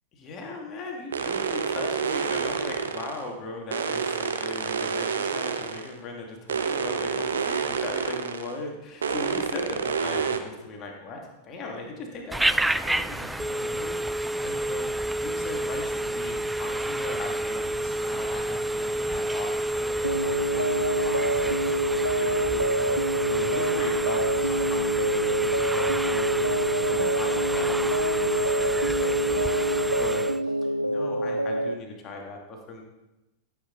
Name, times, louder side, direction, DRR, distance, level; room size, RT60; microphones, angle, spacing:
voice 1, 0.1-14.9 15.2-21.9 22.1-32.8, left 2 dB, 30° left, 0 dB, 2.4 m, -39 dB
sound 1, 1.1-3.3 3.7-5.9 6.5-8.6 9.0-10.4, right 6 dB, 70° right, 0.9 m, -28 dB
Telephone, 12.3-30.4, right 1 dB, 5° right, 0.3 m, -28 dB
sound 2, 20.0-31.7, right 1 dB, 85° right, 0.3 m, -27 dB
14.5 x 8.1 x 4.0 m, 1.0 s
figure-of-eight pair, 90°, 0 cm